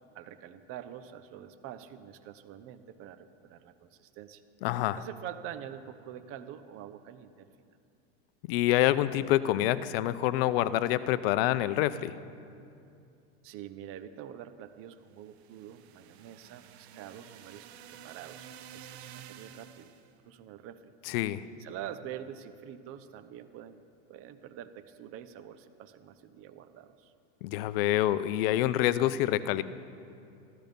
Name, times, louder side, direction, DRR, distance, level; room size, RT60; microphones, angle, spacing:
voice 1, 0.0-4.4 5.0-7.5 13.4-19.9 20.2-20.9 21.6-23.8 24.1-27.1, right 10 dB, 45° right, 11 dB, 0.8 m, -46 dB
voice 2, 4.6-5.0 8.5-12.1 21.1-21.4 27.4-29.6, left 14 dB, 65° left, 14 dB, 0.6 m, -27 dB
sound 1, 15.2-20.1, right 9 dB, 85° right, 0.8 m, -50 dB
14.0 x 13.0 x 5.3 m, 2.5 s
supercardioid pair, 120°, 32 cm